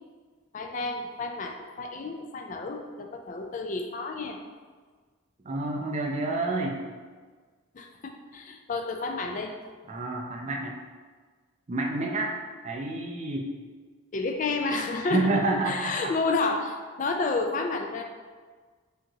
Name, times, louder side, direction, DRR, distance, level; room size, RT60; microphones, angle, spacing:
voice 1, 0.5-4.4 7.7-9.5 14.1-18.0, left 3 dB, 35° left, 4 dB, 0.3 m, -30 dB
voice 2, 5.4-6.8 9.9-10.8 11.7-12.4 12.6-13.5 15.0-16.1, right 2 dB, 30° right, 0 dB, 0.4 m, -29 dB
5.0 x 2.9 x 2.7 m, 1.5 s
head